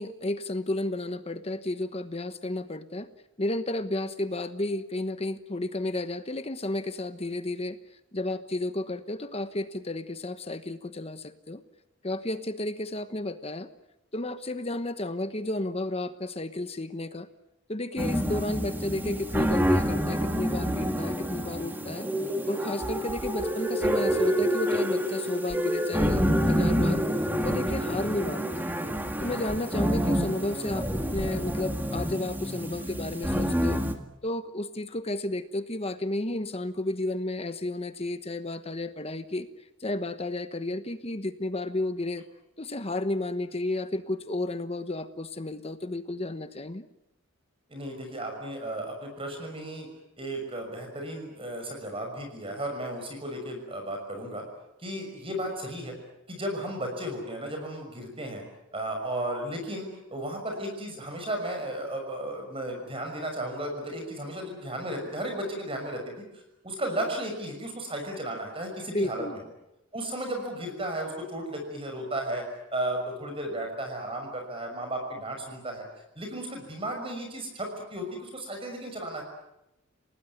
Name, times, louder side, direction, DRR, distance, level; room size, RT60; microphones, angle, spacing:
voice 1, 0.0-3.1 3.4-7.8 8.1-11.6 12.0-13.7 14.1-17.3 17.7-22.1 22.5-27.0 27.4-28.7 29.2-33.8 34.2-39.5 39.8-42.2 42.6-46.9 68.9-69.4, left 2 dB, 30° left, 10 dB, 1.2 m, -32 dB
sound 1, 18.0-33.9, equal, 10° right, 2.0 m, -27 dB
voice 2, 47.7-49.9 50.2-54.4 54.8-55.9 56.3-58.4 58.7-69.4 69.9-72.4 72.7-75.9 76.2-79.2, right 1 dB, 30° right, 3 dB, 6.2 m, -34 dB
29.5 x 18.5 x 9.6 m, 0.90 s
head